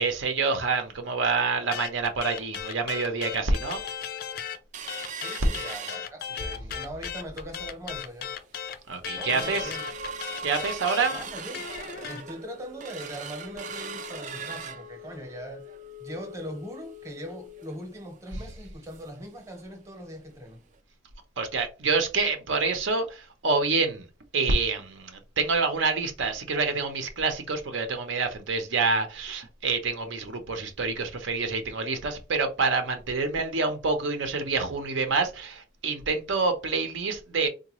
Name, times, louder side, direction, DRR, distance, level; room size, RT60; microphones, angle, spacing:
voice 1, 0.0-3.8 8.9-9.7 10.4-11.1 21.4-24.1 24.3-37.5, right 4 dB, 80° right, 0.6 m, -27 dB
sound 1, 1.7-4.6 4.9-12.2, left 8 dB, 50° left, 0.3 m, -36 dB
sound 2, 4.7-6.6 7.0-7.1 7.4-7.8 8.3-8.4 8.7-19.2 19.6-19.7 20.0-20.2 20.7-20.8, right 3 dB, 40° right, 0.4 m, -40 dB
voice 2, 5.2-8.3 9.2-9.8 11.1-11.7 12.1-15.7 16.0-20.6, equal, 15° right, 0.8 m, -40 dB
3.7 x 2.2 x 3.0 m
head